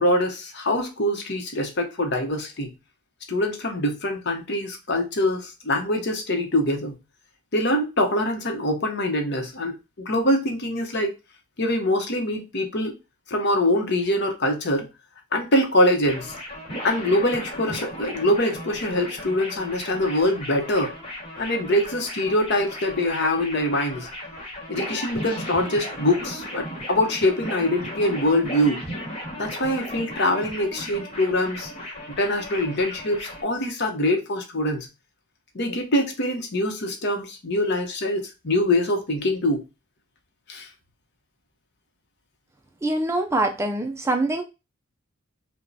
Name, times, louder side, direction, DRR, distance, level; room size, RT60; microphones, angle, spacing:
voice 1, 0.0-2.7 3.3-6.9 7.5-11.1 11.6-12.9 13.3-14.9 15.3-16.3 16.8-20.9 21.4-24.1 24.7-28.8 29.3-31.7 32.1-34.9 35.5-39.6 40.5-40.7, left 1 dB, 50° left, 0.8 m, -24 dB
sound 1, 16.0-33.4, equal, 25° left, 1.3 m, -36 dB
voice 2, 42.8-44.4, right 2 dB, 15° right, 0.3 m, -24 dB
5.0 x 2.2 x 2.6 m
head